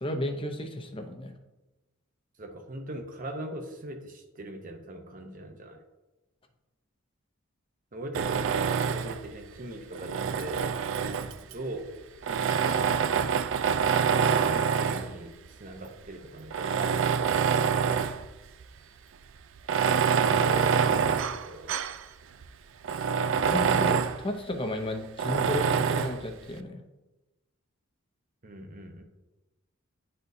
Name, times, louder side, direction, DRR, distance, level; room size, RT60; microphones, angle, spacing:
voice 1, 0.0-1.3 23.5-26.8, left 1 dB, 25° left, 5 dB, 0.7 m, -33 dB
voice 2, 2.4-5.8 7.9-10.7 11.0-11.3 11.5-11.9 12.2-12.8 14.1-17.4 20.2-21.7 28.4-29.0, right 1 dB, 40° right, 4 dB, 0.8 m, -41 dB
Tools, 8.1-9.3 9.9-11.5 12.2-15.1 15.8-15.9 16.5-18.3 18.6-18.7 19.6-22.0 22.4-22.5 22.8-24.2 25.2-26.2, right 6 dB, 65° right, 0.3 m, -26 dB
10.5 x 4.3 x 2.7 m, 1.1 s
head